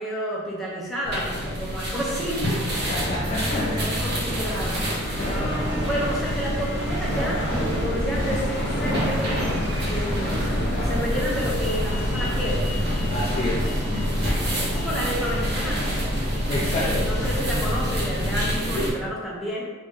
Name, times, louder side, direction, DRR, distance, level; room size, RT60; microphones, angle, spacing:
voice 1, 0.0-3.0 3.5-7.4 7.8-9.4 9.9-10.4 10.8-12.6 14.6-15.9 16.5-19.7, equal, ahead, -7 dB, 0.7 m, -31 dB
sound 1, 1.0-18.9, equal, 50° right, 0.8 m, -27 dB
sound 2, 2.6-17.8, equal, 60° left, 0.9 m, -32 dB
voice 2, 2.9-3.9 5.2-5.3 13.1-13.7 16.5-17.1, left 2 dB, 30° left, -4 dB, 0.3 m, -29 dB
Bowed string instrument, 4.9-10.0, right 1 dB, 85° left, 0.7 m, -39 dB
3.4 x 2.7 x 3.5 m, 1.4 s
head